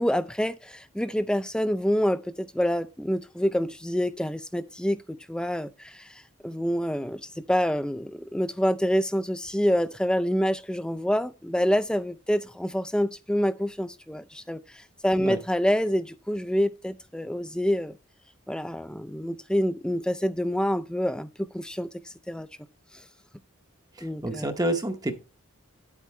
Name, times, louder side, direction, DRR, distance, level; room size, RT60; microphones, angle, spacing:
voice 1, 0.0-18.0 18.5-21.9 22.3-22.5 24.0-24.5, equal, 5° left, 0.3 m, -27 dB
voice 2, 24.0-25.2, right 1 dB, 20° right, 0.8 m, -29 dB
10.0 x 8.2 x 3.1 m
head